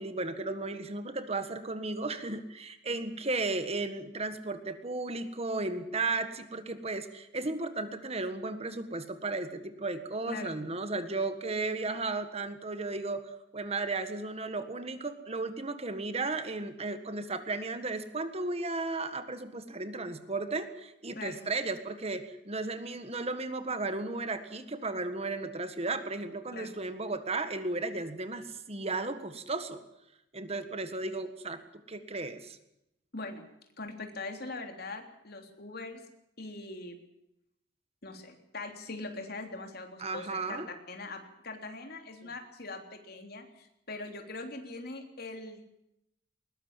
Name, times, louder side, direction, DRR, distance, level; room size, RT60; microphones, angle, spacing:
voice 1, 0.0-29.8 30.3-31.6 31.9-32.6 40.0-40.7, right 3 dB, 35° right, 9 dB, 1.6 m, -35 dB
voice 2, 10.3-10.6 21.1-21.5 26.5-26.8 33.1-33.4 33.8-36.0 36.4-37.0 38.0-45.6, left 3 dB, 55° left, 4 dB, 3.4 m, -42 dB
21.0 x 19.5 x 7.4 m, 0.82 s
head